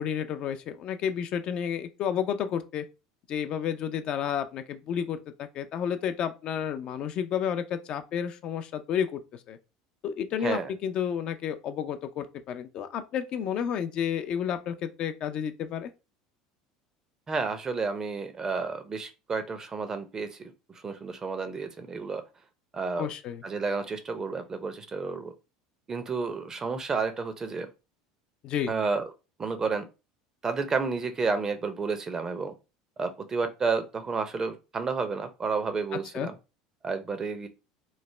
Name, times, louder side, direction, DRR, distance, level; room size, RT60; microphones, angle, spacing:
voice 1, 0.0-2.8 3.3-9.2 9.5-9.6 10.0-15.9 23.0-23.4 28.4-28.7 36.1-36.3, left 8 dB, 50° left, 0.4 m, -31 dB
voice 2, 17.3-22.2 22.7-23.1 23.4-25.3 25.9-27.7 28.7-29.1 29.4-29.9 30.4-32.5 33.0-36.4 36.8-37.5, right 4 dB, 25° right, 0.5 m, -31 dB
3.1 x 2.0 x 3.1 m
hypercardioid pair, 80°, 2 cm